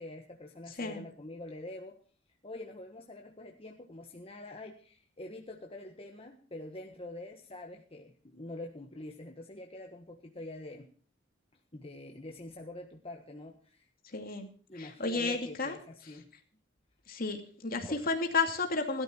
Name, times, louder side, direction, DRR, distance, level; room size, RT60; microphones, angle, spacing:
voice 1, 0.0-2.0 2.4-10.9 11.7-13.9 14.7-16.3 17.7-18.0, left 2 dB, 30° left, 2 dB, 1.5 m, -45 dB
voice 2, 14.1-14.5 14.8-15.8 17.1-19.0, left 3 dB, 50° left, 5 dB, 2.6 m, -32 dB
17.5 x 12.5 x 4.5 m, 0.42 s
head